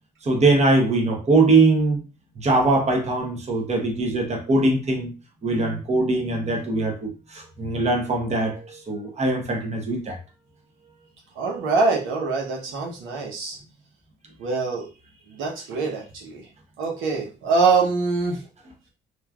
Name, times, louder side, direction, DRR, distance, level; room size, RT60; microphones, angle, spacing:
voice 1, 0.2-2.0 2.4-5.1 5.4-10.2, right 2 dB, 35° right, 0.9 m, -21 dB
voice 2, 11.4-13.6 14.4-14.9 15.3-16.5 16.8-18.4, right 4 dB, 85° right, 0.8 m, -24 dB
3.0 x 2.5 x 2.3 m
cardioid pair, 90°, 20 cm